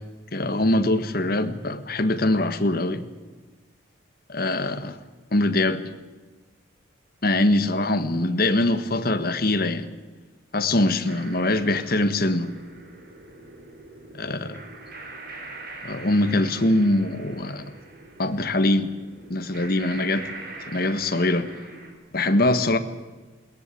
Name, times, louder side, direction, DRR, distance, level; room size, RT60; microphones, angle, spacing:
voice 1, 0.3-3.0 4.3-5.0 5.3-5.9 7.2-9.9 10.5-12.5 14.1-14.5 15.8-17.6 18.2-18.9 19.3-20.3 20.7-21.5 22.1-22.8, left 1 dB, 50° left, 9 dB, 1.4 m, -23 dB
sound 1, 11.1-21.9, right 2 dB, 50° right, 4.8 m, -42 dB
21.5 x 18.5 x 8.5 m, 1.3 s
head